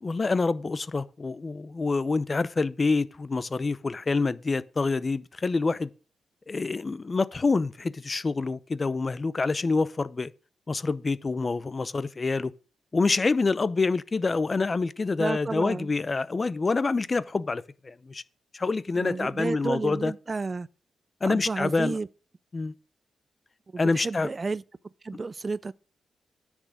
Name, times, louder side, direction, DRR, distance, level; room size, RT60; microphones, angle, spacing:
voice 1, 0.0-5.9 6.5-10.3 10.7-12.5 12.9-18.2 18.5-20.1 21.2-22.0 22.5-22.7 23.8-24.3, left 3 dB, 35° left, 0.7 m, -27 dB
voice 2, 15.2-15.9 19.0-20.7 21.2-22.1 23.7-24.6 25.0-25.7, right 3 dB, 35° right, 0.5 m, -31 dB
9.9 x 6.2 x 6.7 m
cardioid pair, 85°, 0 cm